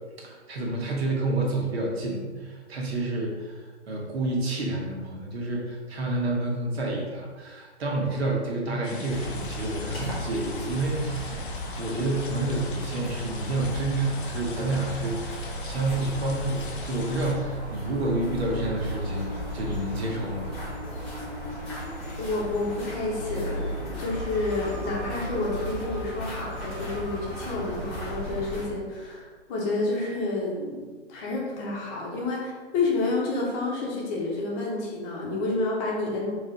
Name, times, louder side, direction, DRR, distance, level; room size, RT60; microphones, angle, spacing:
voice 1, 0.2-20.5, right 2 dB, 60° right, -2 dB, 1.4 m, -29 dB
sound 1, 8.8-17.3, left 4 dB, 45° left, 0.7 m, -42 dB
sound 2, 9.1-28.6, equal, 5° left, 0.4 m, -35 dB
sound 3, 18.1-25.0, equal, 35° right, 1.0 m, -43 dB
voice 2, 22.2-36.3, left 2 dB, 20° left, -3 dB, 1.0 m, -29 dB
4.2 x 3.2 x 4.0 m, 1.4 s
figure-of-eight pair, 135°, 36 cm